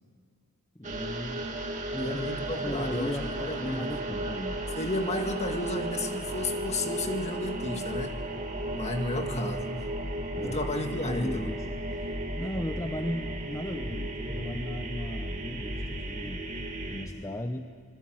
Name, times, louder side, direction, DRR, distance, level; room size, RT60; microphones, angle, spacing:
voice 1, 0.7-1.5 1.9-2.2 2.6-4.6 10.3-10.6 11.1-16.5 16.9-17.7, left 1 dB, 15° left, 6 dB, 0.8 m, -36 dB
sound 1, 0.8-17.1, right 1 dB, 35° right, 2.4 m, -34 dB
voice 2, 2.0-3.9 4.8-8.1 8.7-9.7 10.4-11.5, left 1 dB, 30° left, 5 dB, 1.9 m, -32 dB
26.5 x 21.0 x 7.9 m, 2.1 s
head